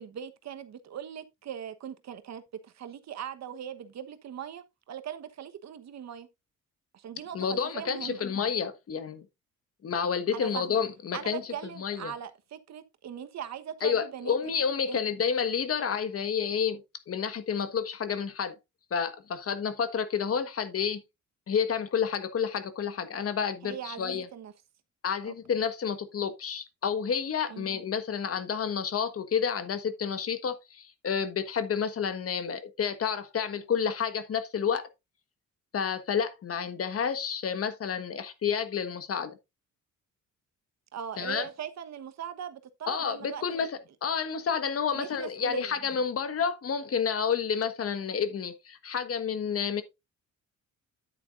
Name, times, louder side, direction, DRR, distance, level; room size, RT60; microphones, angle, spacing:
voice 1, 0.0-6.3 6.9-8.2 10.3-10.8 11.1-14.4 14.9-15.0 23.6-24.5 25.2-25.3 27.5-27.7 40.9-43.7 44.9-45.8, right 9 dB, 60° right, 1.2 m, -40 dB
voice 2, 7.3-9.3 9.8-11.4 11.8-12.1 13.8-18.5 18.9-21.0 21.5-24.2 25.0-34.9 35.7-39.4 41.2-41.5 42.9-49.8, left 7 dB, 50° left, 1.4 m, -30 dB
9.7 x 8.6 x 2.5 m
cardioid pair, 90°, 30 cm